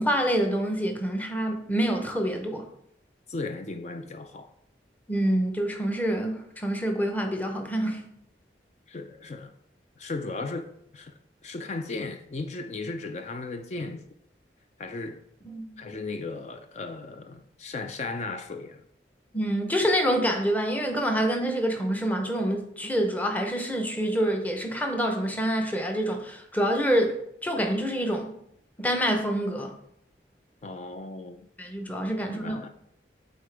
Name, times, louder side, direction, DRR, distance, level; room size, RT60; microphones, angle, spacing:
voice 1, 0.0-2.7 5.1-8.0 15.4-15.8 19.3-28.3 28.8-29.7 31.6-32.6, equal, 10° left, 0.7 m, -26 dB
voice 2, 3.3-4.5 8.9-9.5 10.0-11.1 11.4-14.1 14.8-15.2 15.8-18.8 30.6-31.5 32.2-32.7, left 3 dB, 40° left, 0.4 m, -36 dB
8.6 x 3.8 x 3.3 m
head